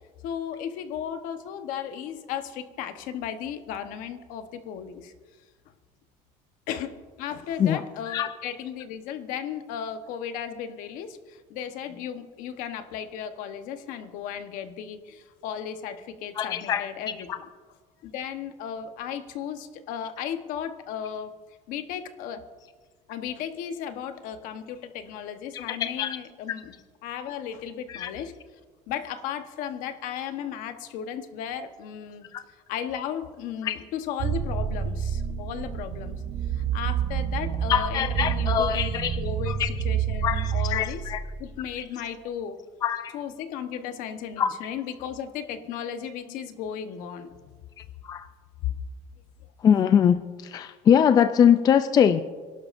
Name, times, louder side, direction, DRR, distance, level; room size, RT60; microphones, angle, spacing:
voice 1, 0.2-5.1 6.7-17.3 18.0-21.3 21.7-22.4 23.1-26.7 27.0-28.4 28.9-32.3 32.7-36.2 36.5-41.1 41.4-42.6 43.1-47.5 48.6-48.8, left 8 dB, 60° left, 8 dB, 1.1 m, -35 dB
voice 2, 16.4-16.9 25.7-26.2 28.0-28.1 33.6-33.8 37.7-39.2 39.6-39.7 40.2-41.2 42.8-43.2 44.4-44.5 48.1-48.2 49.6-50.2 50.5-52.2, left 8 dB, 25° left, 11 dB, 0.3 m, -22 dB
sound 1, 34.2-41.7, right 8 dB, 40° right, 0.7 m, -28 dB
26.0 x 11.5 x 2.6 m, 1.5 s
cardioid pair, 155°, 15 cm